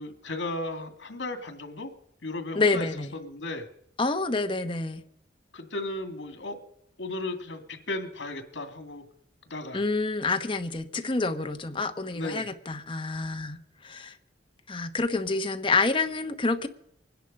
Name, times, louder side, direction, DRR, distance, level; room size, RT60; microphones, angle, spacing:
voice 1, 0.0-1.9 2.2-2.9 3.1-3.7 5.5-6.6 7.0-9.0 9.5-9.8 12.1-12.5, left 2 dB, 80° left, 2.1 m, -35 dB
voice 2, 2.5-3.1 4.0-5.0 9.7-14.2 14.7-16.7, left 3 dB, 30° left, 1.0 m, -28 dB
24.5 x 10.0 x 5.3 m
head